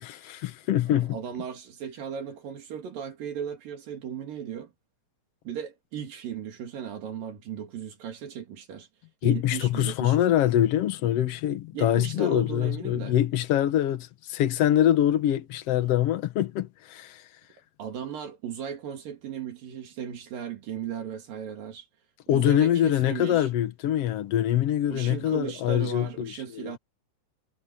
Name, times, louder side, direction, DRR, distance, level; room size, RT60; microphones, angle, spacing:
voice 1, 0.0-1.2 9.2-17.2 22.3-26.7, left 11 dB, 60° left, 1.7 m, -24 dB
voice 2, 0.9-4.7 5.5-8.9 9.2-10.3 11.7-13.2 17.8-21.9 22.3-23.5 24.9-26.8, right 8 dB, 80° right, 4.2 m, -36 dB
omnidirectional pair, 3.9 m